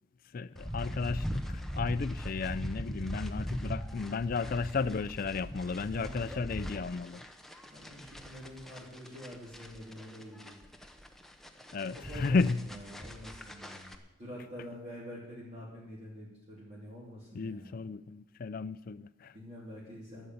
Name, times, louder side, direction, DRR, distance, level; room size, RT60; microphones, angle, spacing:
voice 1, 0.3-7.2 11.7-12.6 17.3-19.3, left 4 dB, 45° left, 0.4 m, -33 dB
sound 1, 0.6-14.0, equal, ahead, 0.7 m, -40 dB
voice 2, 5.9-7.1 7.7-10.6 11.9-17.8 19.3-20.3, equal, 30° right, 3.0 m, -47 dB
12.5 x 6.9 x 9.3 m
head